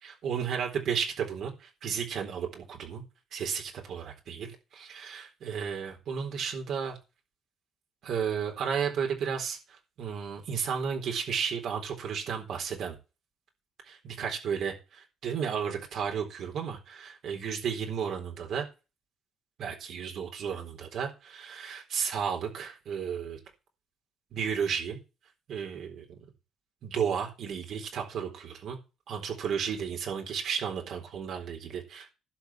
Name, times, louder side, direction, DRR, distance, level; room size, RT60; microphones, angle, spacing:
voice 1, 0.0-3.0 3.3-7.0 8.0-9.6 10.0-13.0 13.9-18.7 19.6-23.4 24.3-25.0 25.5-26.0 26.8-28.8 29.1-32.1, right 7 dB, 65° right, 2 dB, 4.0 m, -33 dB
11.5 x 5.6 x 8.6 m, 0.30 s
cardioid pair, 105°, 0 cm